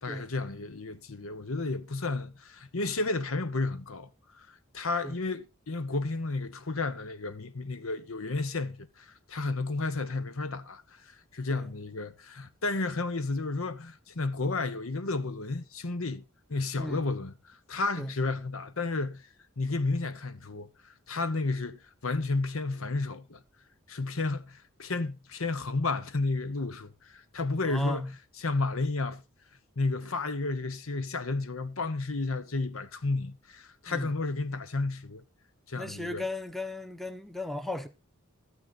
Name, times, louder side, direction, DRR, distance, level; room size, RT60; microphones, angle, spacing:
voice 1, 0.0-4.1 4.4-16.2 16.5-19.2 19.6-23.4 23.9-28.1 28.4-29.2 29.8-35.2 35.7-36.2, left 3 dB, 75° left, 1.1 m, -32 dB
voice 2, 27.6-28.1 33.9-34.1 35.8-37.9, left 1 dB, ahead, 1.0 m, -35 dB
13.0 x 9.4 x 4.2 m
head